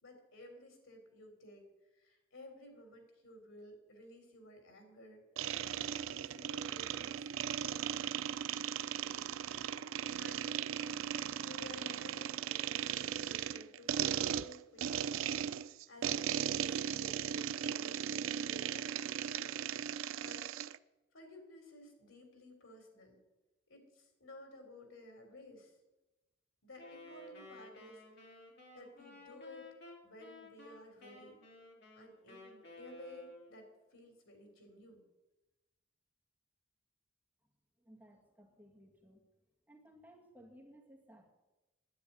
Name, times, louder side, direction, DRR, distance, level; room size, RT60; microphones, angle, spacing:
voice 1, 0.0-1.7 1.9-5.2 5.5-7.8 10.1-15.2 15.9-19.5 20.2-20.4 21.1-23.2 23.7-25.8 26.6-28.3 28.7-29.7 30.0-31.4 31.9-35.0, left 1 dB, 85° left, 4 dB, 3.5 m, -55 dB
sound 1, 5.4-20.8, right 9 dB, 85° right, 0.4 m, -37 dB
Wind instrument woodwind instrument, 26.8-33.7, left 1 dB, 55° left, 2.8 m, -54 dB
voice 2, 37.8-39.3 39.7-41.3, equal, 10° right, -1 dB, 2.0 m, -59 dB
10.0 x 9.1 x 9.8 m, 1.1 s
head